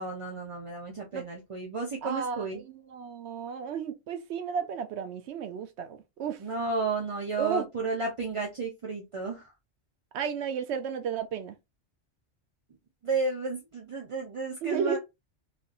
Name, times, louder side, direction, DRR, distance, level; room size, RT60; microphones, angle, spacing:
voice 1, 0.0-2.6 6.4-9.5 13.0-15.0, right 3 dB, 40° right, 0.5 m, -32 dB
voice 2, 2.0-6.4 7.4-7.7 10.1-11.5 14.6-15.0, right 6 dB, 70° right, 0.8 m, -33 dB
3.3 x 2.7 x 2.4 m
omnidirectional pair, 1.2 m